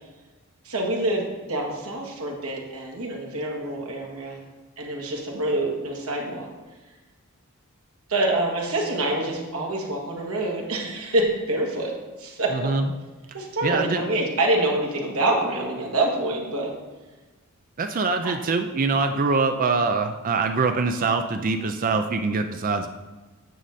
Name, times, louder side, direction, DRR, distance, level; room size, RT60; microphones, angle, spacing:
voice 1, 0.6-1.2 1.5-4.4 4.8-6.5 8.1-12.6 13.3-16.7 18.2-18.3, right 1 dB, 80° right, 0 dB, 1.7 m, -26 dB
voice 2, 12.5-12.9 13.6-14.0 17.8-22.9, right 4 dB, 40° right, 7 dB, 0.4 m, -24 dB
9.3 x 6.5 x 4.2 m, 1.2 s
head